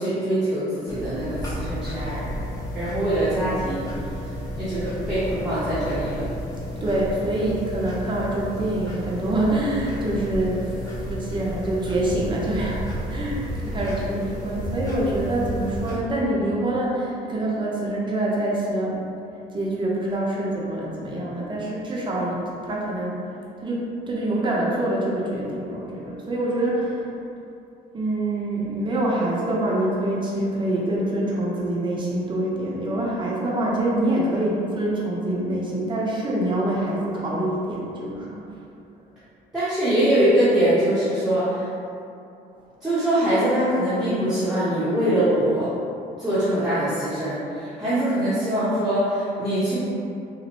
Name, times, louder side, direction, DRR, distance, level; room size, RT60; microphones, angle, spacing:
voice 1, 0.0-2.3 2.7-3.8 4.6-6.2 39.5-41.7 42.8-45.7 46.2-49.8, right 1 dB, 5° right, -13 dB, 0.9 m, -23 dB
sound 1, 0.9-16.0, equal, 20° left, 1.0 m, -32 dB
voice 2, 6.8-10.8 11.1-19.0 19.5-23.3 23.6-27.1 27.9-38.4, right 1 dB, 30° right, -5 dB, 0.7 m, -25 dB
4.0 x 2.1 x 2.9 m, 2.6 s
cardioid pair, 110°, 17 cm